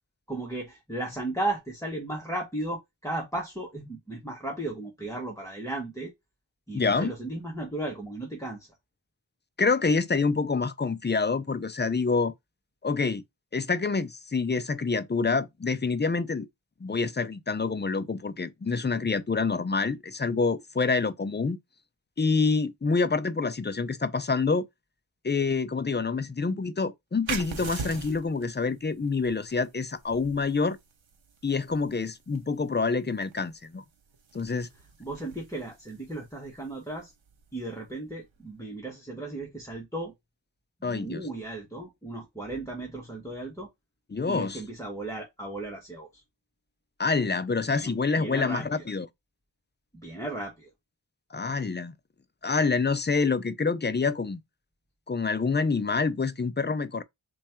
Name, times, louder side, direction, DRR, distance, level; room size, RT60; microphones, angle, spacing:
voice 1, 0.3-6.1 6.7-8.7 35.0-37.1 37.5-40.1 40.8-43.7 44.3-46.2 47.7-48.9 49.9-50.7, right 2 dB, 5° left, 1.0 m, -35 dB
voice 2, 6.7-7.1 9.6-12.3 12.8-13.2 13.5-16.5 16.8-21.6 22.2-24.7 25.2-30.8 31.4-33.8 34.3-34.7 40.8-41.2 44.1-44.6 47.0-49.1 51.3-51.9 52.4-54.4 55.1-57.0, left 4 dB, 25° left, 0.4 m, -27 dB
sound 1, 27.2-38.5, right 5 dB, 85° right, 0.7 m, -43 dB
3.1 x 2.3 x 4.3 m
wide cardioid pair, 40°, 46 cm